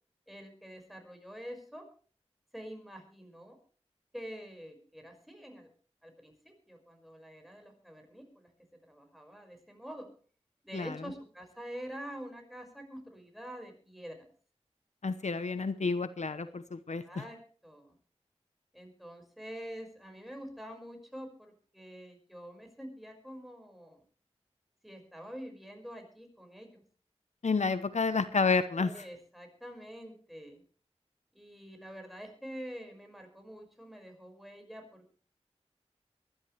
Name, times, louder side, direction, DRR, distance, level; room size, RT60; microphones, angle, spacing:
voice 1, 0.3-1.9 2.5-3.6 4.1-5.7 6.0-8.5 8.8-10.1 10.6-14.2 17.0-17.4 17.6-18.0 18.7-24.0 24.8-26.8 28.8-30.6 31.3-35.2, equal, ahead, 3 dB, 5.7 m, -46 dB
voice 2, 15.0-17.2 27.4-29.0, left 4 dB, 80° left, 12 dB, 0.9 m, -30 dB
24.0 x 12.0 x 3.3 m, 0.41 s
wide cardioid pair, 50°, 12 cm